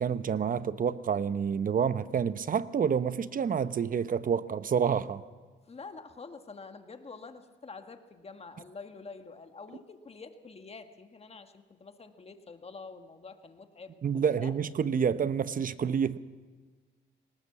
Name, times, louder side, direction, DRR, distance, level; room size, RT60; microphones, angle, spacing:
voice 1, 0.0-5.2 14.0-16.2, right 7 dB, 45° right, 0.9 m, -28 dB
voice 2, 5.7-14.5, left 4 dB, 30° left, 1.7 m, -47 dB
19.0 x 18.5 x 7.4 m
cardioid pair, 90°, 20 cm